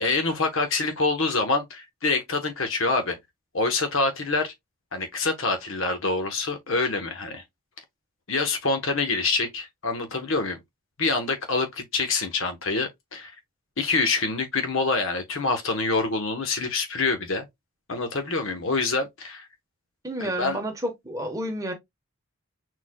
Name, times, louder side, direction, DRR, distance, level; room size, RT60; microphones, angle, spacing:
voice 1, 0.0-3.2 3.5-4.5 4.9-7.4 8.3-10.6 11.0-13.3 13.8-17.5 17.9-19.5 20.2-20.6, left 3 dB, 65° left, 1.1 m, -26 dB
voice 2, 20.0-21.7, equal, 15° right, 1.0 m, -30 dB
4.5 x 4.2 x 2.2 m
head